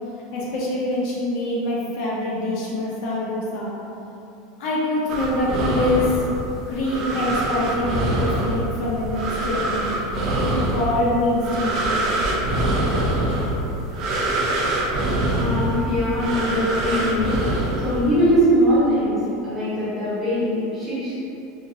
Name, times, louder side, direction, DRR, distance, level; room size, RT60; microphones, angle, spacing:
voice 1, 0.3-3.7 4.6-6.2 6.7-9.8 10.4-12.1, left 1 dB, 55° left, -5 dB, 0.6 m, -24 dB
sound 1, 5.1-18.4, right 1 dB, 45° right, 0.4 m, -24 dB
voice 2, 15.3-17.4 17.8-21.1, equal, 15° right, -12 dB, 1.3 m, -21 dB
3.6 x 2.5 x 2.7 m, 2.8 s
supercardioid pair, 150°, 0 cm